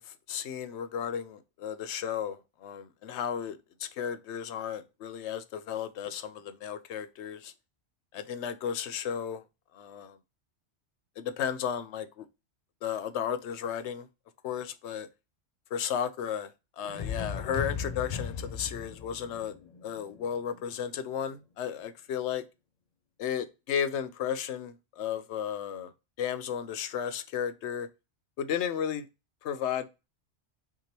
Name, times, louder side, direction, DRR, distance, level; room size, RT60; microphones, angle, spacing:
voice 1, 0.0-7.5 8.1-9.4 9.7-10.2 11.2-12.3 12.8-14.1 14.4-15.1 15.7-19.5 19.8-22.4 23.2-25.9 26.2-27.9 28.4-29.1 29.4-29.9, left 8 dB, 80° left, 0.9 m, -34 dB
sound 1, 16.9-20.7, left 6 dB, 60° left, 0.4 m, -37 dB
5.8 x 3.0 x 2.9 m
omnidirectional pair, 1.2 m